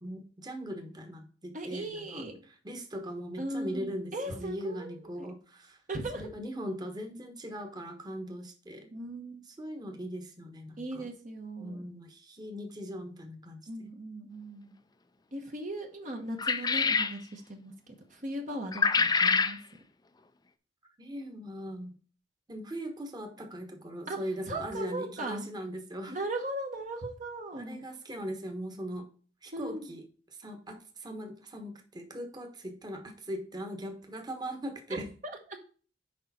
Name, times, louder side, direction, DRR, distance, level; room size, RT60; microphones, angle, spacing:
voice 1, 0.0-2.2 2.6-5.8 6.1-8.9 9.6-11.1 11.6-13.9 21.0-21.9 22.5-26.2 27.6-29.1 29.4-30.0 30.4-35.1, equal, 25° right, 4 dB, 1.2 m, -40 dB
voice 2, 1.5-2.4 3.4-5.3 5.9-6.3 8.9-9.5 10.8-11.9 13.7-14.7 15.3-19.6 24.1-24.2 24.5-25.5 26.1-27.8 29.5-30.0 34.9-35.6, right 1 dB, 45° right, 2 dB, 1.1 m, -38 dB
sound 1, 16.4-17.2 18.7-19.6, left 5 dB, 20° left, 0.5 m, -25 dB
6.5 x 5.1 x 4.2 m, 0.40 s
head